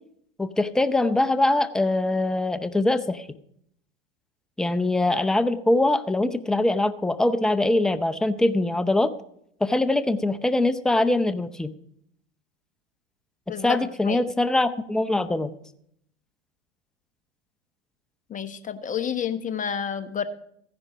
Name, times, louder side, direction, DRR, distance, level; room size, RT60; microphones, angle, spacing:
voice 1, 0.4-3.3 4.6-9.1 9.6-11.7 13.6-15.5, left 2 dB, ahead, 11 dB, 0.6 m, -23 dB
voice 2, 13.5-13.8 14.1-14.2 18.3-20.2, left 8 dB, 25° left, 10 dB, 1.1 m, -29 dB
15.0 x 10.5 x 5.0 m, 0.71 s
hypercardioid pair, 100°, 34 cm